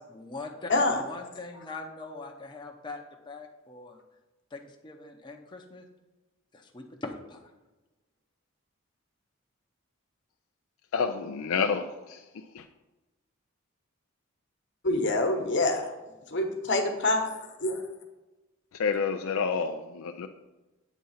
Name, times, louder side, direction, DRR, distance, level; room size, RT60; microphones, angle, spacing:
voice 1, 0.1-4.0 4.5-5.9 6.5-7.4, left 3 dB, 25° left, 1 dB, 0.7 m, -42 dB
voice 2, 0.7-1.0 14.8-15.8 16.3-17.8, left 2 dB, 60° left, 3 dB, 1.1 m, -26 dB
voice 3, 10.9-12.2 12.5-12.6 18.7-20.3, left 5 dB, 80° left, 6 dB, 0.4 m, -29 dB
8.2 x 3.8 x 5.6 m, 1.1 s
head